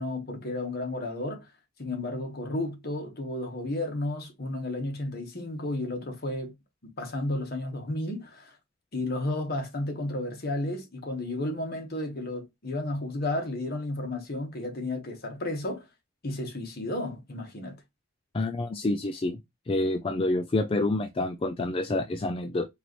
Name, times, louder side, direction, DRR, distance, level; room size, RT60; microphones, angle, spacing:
voice 1, 0.0-1.5 1.8-6.5 6.8-8.6 8.9-15.8 16.2-17.8, left 2 dB, 50° left, 1.2 m, -32 dB
voice 2, 18.3-19.4 19.7-22.7, left 2 dB, 30° left, 0.4 m, -28 dB
4.5 x 2.6 x 3.0 m
head